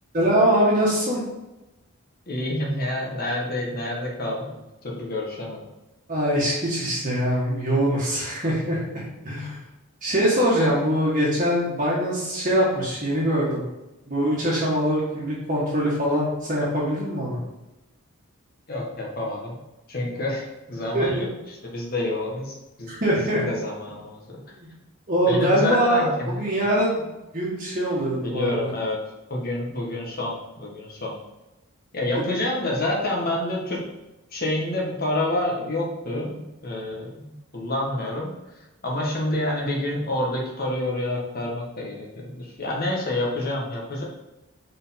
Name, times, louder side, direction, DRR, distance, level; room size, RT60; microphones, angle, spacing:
voice 1, 0.1-1.2 6.1-9.6 10.0-13.6 14.1-17.4 20.9-21.1 22.9-23.4 24.6-24.7 25.1-27.1 27.3-28.7 32.1-32.2, equal, 35° right, -6 dB, 1.5 m, -23 dB
voice 2, 2.3-5.6 18.7-19.6 19.9-22.9 23.3-24.2 25.3-26.7 28.2-29.0 29.3-31.1 31.9-33.8 34.3-38.3 38.8-44.0, left 1 dB, 40° left, -2 dB, 1.5 m, -28 dB
5.0 x 4.5 x 5.8 m, 1.0 s
head